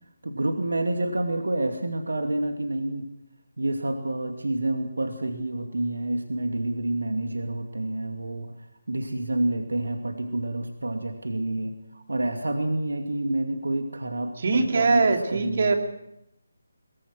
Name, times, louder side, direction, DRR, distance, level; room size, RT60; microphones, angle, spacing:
voice 1, 0.2-3.1 3.6-8.5 8.9-15.7, right 1 dB, 65° right, 5 dB, 2.5 m, -28 dB
voice 2, 14.4-15.7, right 3 dB, 45° right, 3 dB, 3.2 m, -22 dB
22.5 x 22.5 x 6.2 m, 0.82 s
figure-of-eight pair, 150°, 0 cm